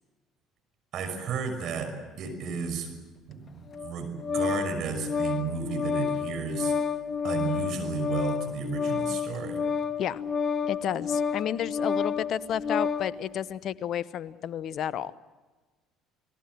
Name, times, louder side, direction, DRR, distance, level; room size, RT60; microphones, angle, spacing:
voice 1, 0.9-2.9 3.3-6.7 7.2-9.6, right 6 dB, 55° right, 5 dB, 5.7 m, -33 dB
Organ, 3.7-13.1, left 6 dB, 35° left, 1.6 m, -29 dB
voice 2, 10.6-15.1, left 9 dB, 55° left, 18 dB, 0.9 m, -31 dB
29.5 x 20.0 x 7.7 m, 1.2 s
hypercardioid pair, 60°, 0 cm